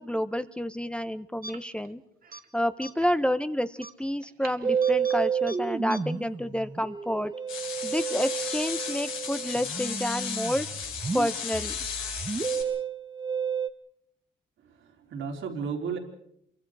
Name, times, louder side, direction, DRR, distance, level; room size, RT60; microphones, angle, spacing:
voice 1, 0.0-2.0 2.5-7.3 7.8-10.7 11.1-11.7, equal, 5° left, 11 dB, 1.0 m, -29 dB
sound 1, 1.4-1.9 2.2-2.4 2.8-3.2 3.8-5.2 5.5-5.6 5.9-6.0, right 2 dB, 45° right, 2.1 m, -42 dB
Musical instrument, 4.6-13.7, right 6 dB, 20° right, 1.3 m, -31 dB
sound 2, 7.5-12.6, left 7 dB, 85° left, 6.6 m, -35 dB
voice 2, 14.6-16.0, right 6 dB, 75° right, 3 dB, 3.9 m, -34 dB
27.5 x 24.0 x 4.9 m, 0.73 s
cardioid pair, 90°, 20 cm